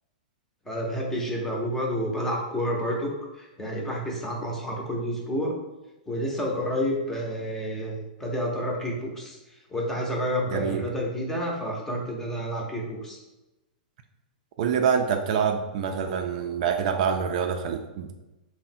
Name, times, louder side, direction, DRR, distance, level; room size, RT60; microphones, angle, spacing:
voice 1, 0.7-5.6 6.1-9.4 9.7-13.2, equal, 5° left, -1 dB, 0.6 m, -29 dB
voice 2, 10.5-10.9 14.6-18.2, right 7 dB, 55° right, 5 dB, 0.4 m, -26 dB
3.6 x 2.1 x 4.1 m, 1.0 s
hypercardioid pair, 150°, 5 cm